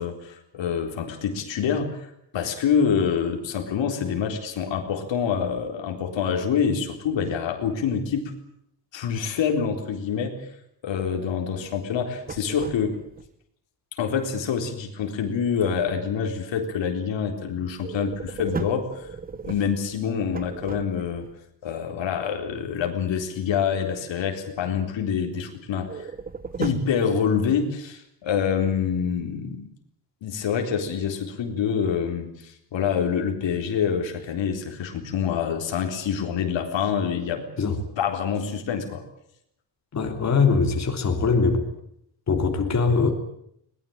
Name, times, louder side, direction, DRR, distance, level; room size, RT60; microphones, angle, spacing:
voice 1, 0.0-2.1 2.3-8.3 8.9-10.4 10.8-13.0 14.0-19.1 19.5-21.2 21.6-25.9 26.6-29.6 30.2-37.4 38.0-39.0, left 7 dB, 90° left, 4 dB, 4.1 m, -26 dB
sound 1, 12.0-13.3 17.8-21.3 25.8-27.0, right 4 dB, 20° right, 0.9 m, -36 dB
voice 2, 39.9-41.6 42.3-43.1, left 4 dB, 40° left, 3 dB, 3.3 m, -22 dB
21.5 x 20.0 x 8.8 m, 0.72 s
wide cardioid pair, 170°, 43 cm